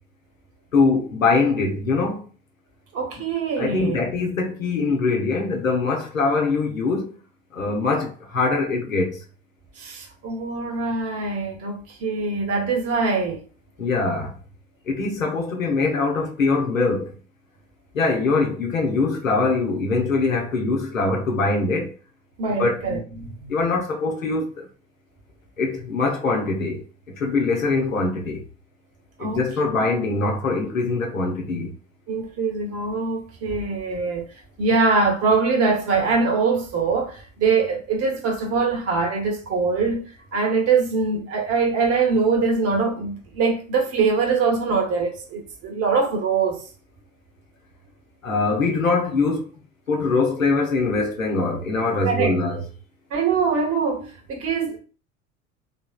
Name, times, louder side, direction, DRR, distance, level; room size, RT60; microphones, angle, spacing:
voice 1, 0.7-2.3 3.6-7.1 7.5-9.2 13.8-14.4 14.9-17.1 17.9-21.9 22.6-22.8 23.5-24.7 25.6-26.8 27.2-28.4 29.2-31.7 48.2-49.4 49.9-52.6, left 3 dB, 80° left, 0.8 m, -23 dB
voice 2, 2.9-4.0 9.8-13.4 22.4-23.6 29.2-29.5 32.1-34.3 34.6-40.1 40.3-46.6 52.0-52.4 53.1-54.8, right 4 dB, 40° right, 1.0 m, -23 dB
3.4 x 2.6 x 2.2 m
figure-of-eight pair, 70°, 39 cm